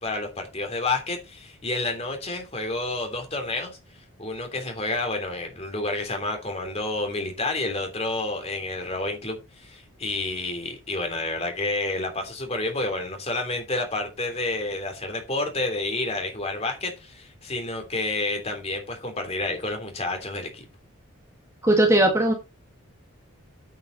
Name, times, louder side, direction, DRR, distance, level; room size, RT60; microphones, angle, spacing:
voice 1, 0.0-3.8 4.2-20.6, left 2 dB, 30° left, 3.1 m, -29 dB
voice 2, 21.6-22.3, right 1 dB, 15° right, 1.8 m, -18 dB
9.1 x 8.2 x 4.1 m
head